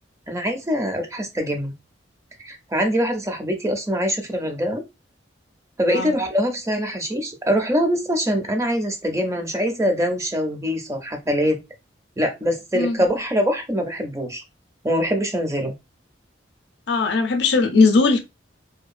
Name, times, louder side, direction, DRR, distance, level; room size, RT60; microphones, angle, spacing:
voice 1, 0.3-1.7 2.4-4.8 5.8-11.6 12.2-14.4 14.8-15.7, equal, 15° right, 0.5 m, -23 dB
voice 2, 12.7-13.0 16.9-18.2, left 4 dB, 65° left, 0.5 m, -19 dB
2.8 x 2.2 x 2.4 m
head